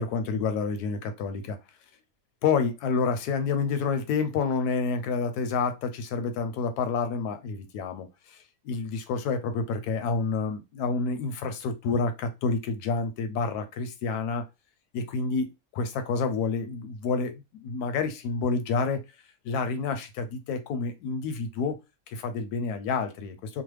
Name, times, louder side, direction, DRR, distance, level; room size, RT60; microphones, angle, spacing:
voice 1, 0.0-1.6 2.4-8.4 8.6-14.4 14.9-19.0 19.4-21.8 22.1-23.6, left 4 dB, 85° left, 1.2 m, -29 dB
3.1 x 2.0 x 3.2 m
omnidirectional pair, 1.6 m